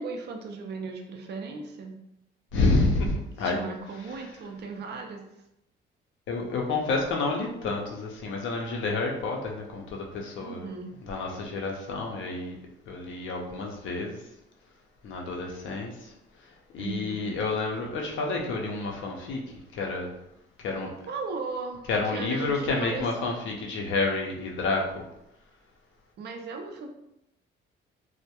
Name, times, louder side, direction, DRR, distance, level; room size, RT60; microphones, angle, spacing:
voice 1, 0.0-2.0 3.4-5.2 10.4-10.9 16.8-17.4 21.1-23.1 26.2-26.9, right 4 dB, 55° right, 3 dB, 0.5 m, -37 dB
voice 2, 2.5-3.6 6.3-10.7 11.1-12.6 12.9-14.2 15.0-16.1 16.7-19.4 19.7-20.1 20.6-20.9 21.9-25.0, left 3 dB, 75° left, 0 dB, 0.6 m, -29 dB
2.2 x 2.1 x 2.8 m, 0.83 s
cardioid pair, 90°, 20 cm